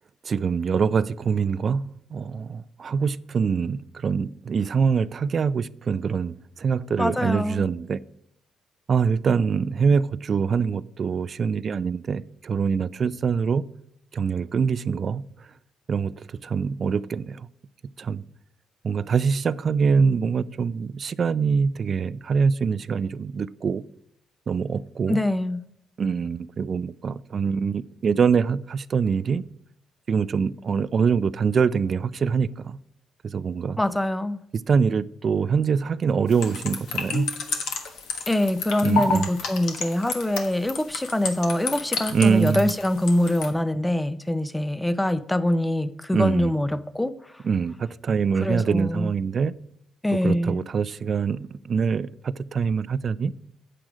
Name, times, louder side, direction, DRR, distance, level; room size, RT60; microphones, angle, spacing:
voice 1, 0.2-8.0 8.9-13.7 14.1-15.2 15.9-17.5 18.0-18.2 18.8-23.8 24.5-25.2 26.0-29.4 30.1-32.8 33.2-33.8 34.5-37.3 38.8-39.3 42.1-42.7 46.1-46.5 47.4-49.5 50.2-53.3, right 6 dB, 45° right, 0.4 m, -24 dB
voice 2, 7.0-7.7 25.1-25.6 33.8-34.4 38.3-47.4 48.4-49.1 50.0-50.6, left 1 dB, 10° left, 0.5 m, -24 dB
sound 1, 36.3-43.5, left 5 dB, 85° left, 1.4 m, -30 dB
9.0 x 7.6 x 4.9 m
cardioid pair, 90°, 0 cm